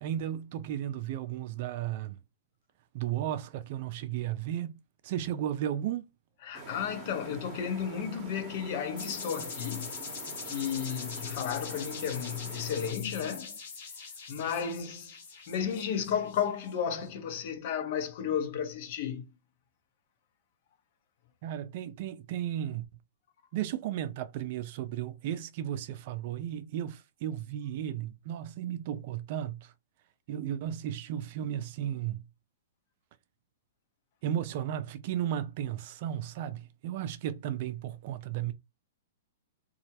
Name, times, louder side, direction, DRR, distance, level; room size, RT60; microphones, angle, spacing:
voice 1, 0.0-2.2 2.9-6.1 21.4-22.8 23.5-29.7 30.3-32.2 34.2-38.5, right 11 dB, 50° right, 0.4 m, -34 dB
voice 2, 6.4-9.9 10.4-13.6 14.3-15.2 15.5-19.3, left 8 dB, 50° left, 0.6 m, -33 dB
sound 1, 6.5-12.9, right 4 dB, 35° right, 0.8 m, -46 dB
sound 2, 9.0-16.7, left 5 dB, 65° left, 1.2 m, -42 dB
2.3 x 2.0 x 2.8 m
hypercardioid pair, 135°, 0 cm